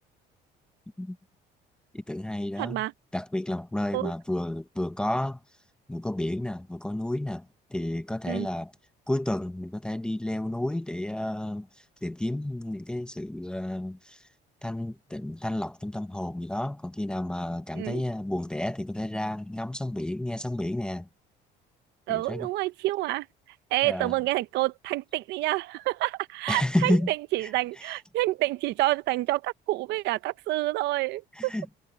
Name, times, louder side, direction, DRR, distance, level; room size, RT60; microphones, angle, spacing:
voice 1, 1.9-2.8 3.1-5.4 5.9-8.7 9.1-14.2 14.6-21.1 22.1-22.5 23.8-24.1 26.5-27.1 27.8-27.9 31.4-31.7, left 1 dB, 5° left, 0.8 m, -31 dB
voice 2, 2.6-2.9 3.9-4.1 8.3-8.5 17.7-18.0 22.1-23.3 23.7-31.5, right 18 dB, 70° right, 0.8 m, -28 dB
cardioid pair, 160°, 18 cm